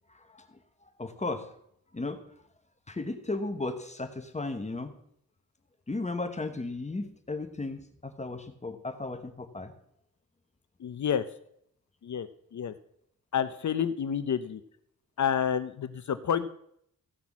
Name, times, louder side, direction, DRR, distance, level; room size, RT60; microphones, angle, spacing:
voice 1, 0.1-1.5 1.9-2.2 2.9-4.9 5.9-9.7, left 2 dB, 20° left, 7 dB, 1.1 m, -35 dB
voice 2, 10.8-11.2 12.0-12.3 12.5-12.7 13.3-14.6 15.2-16.5, left 8 dB, 55° left, 12 dB, 0.7 m, -29 dB
15.5 x 6.0 x 7.2 m, 0.71 s
wide cardioid pair, 135°, 34 cm